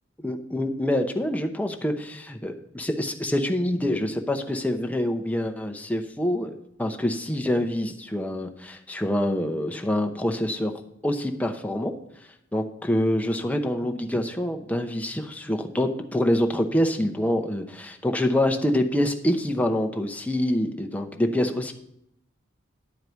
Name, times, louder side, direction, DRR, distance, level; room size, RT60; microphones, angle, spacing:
voice 1, 0.2-10.7 11.0-11.9 12.5-21.7, left 1 dB, 10° left, 5 dB, 0.7 m, -26 dB
10.5 x 4.7 x 6.8 m, 0.77 s
head